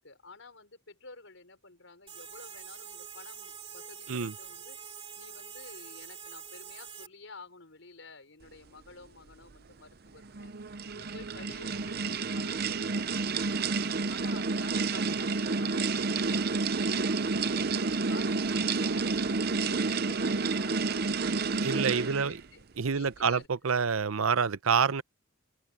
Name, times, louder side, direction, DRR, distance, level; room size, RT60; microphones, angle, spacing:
voice 1, 0.0-4.8 5.2-10.5 10.9-13.7 14.1-22.6 22.9-23.5, left 3 dB, 70° left, 5.5 m, -51 dB
sound 1, 2.1-7.1, right 7 dB, 25° right, 5.1 m, -45 dB
sound 2, 10.2-22.4, right 4 dB, 50° right, 0.6 m, -30 dB
voice 2, 21.6-22.4 22.8-25.0, right 6 dB, 90° right, 0.7 m, -27 dB
open air
head